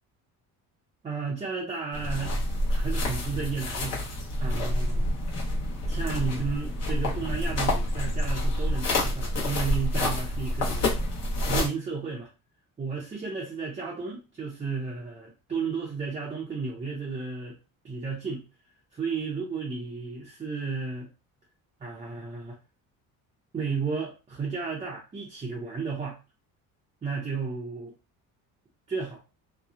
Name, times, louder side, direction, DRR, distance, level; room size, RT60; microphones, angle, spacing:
voice 1, 1.0-2.4 2.7-4.0 4.4-5.1 5.9-11.0 11.5-12.3 12.8-17.6 17.8-18.4 18.9-21.1 21.8-22.6 23.5-26.2 27.0-27.9 28.9-29.2, right 5 dB, 20° right, -4 dB, 0.5 m, -33 dB
sound 1, 1.9-11.7, left 1 dB, 45° left, 0.9 m, -28 dB
2.7 x 2.0 x 2.4 m, 0.30 s
cardioid pair, 150°, 35 cm